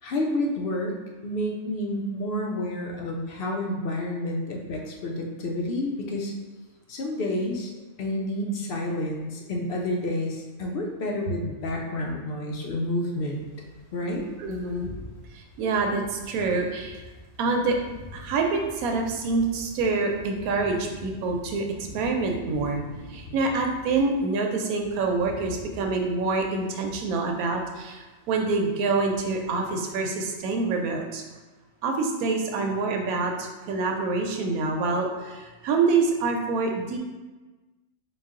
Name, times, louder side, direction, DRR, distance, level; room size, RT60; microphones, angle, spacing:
voice 1, 0.0-6.3 6.9-7.7 8.0-13.4 13.9-14.3, left 1 dB, 70° left, 0 dB, 0.5 m, -29 dB
sound 1, 13.3-24.2 24.6-28.0 28.2-28.5 28.8-29.6 29.9-30.1, left 1 dB, 30° left, 0.8 m, -45 dB
voice 2, 14.4-14.9 15.3-17.0 17.4-17.8 18.1-21.7 21.9-22.8 23.1-31.2 31.8-37.0, right 3 dB, 85° right, 2 dB, 1.0 m, -26 dB
3.9 x 2.3 x 3.6 m, 1.2 s
omnidirectional pair, 1.5 m